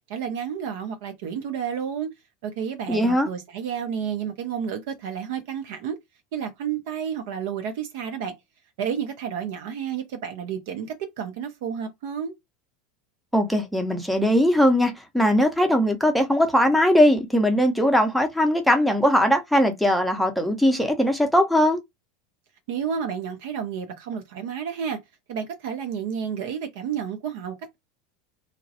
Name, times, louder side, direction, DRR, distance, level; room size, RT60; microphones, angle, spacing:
voice 1, 0.1-2.1 2.4-6.0 6.3-8.4 8.8-12.3 22.7-25.0 25.3-27.8, right 7 dB, 60° right, 0.5 m, -31 dB
voice 2, 2.9-3.3 13.3-21.8, equal, ahead, 0.7 m, -20 dB
2.3 x 2.1 x 2.7 m
figure-of-eight pair, 80°, 0 cm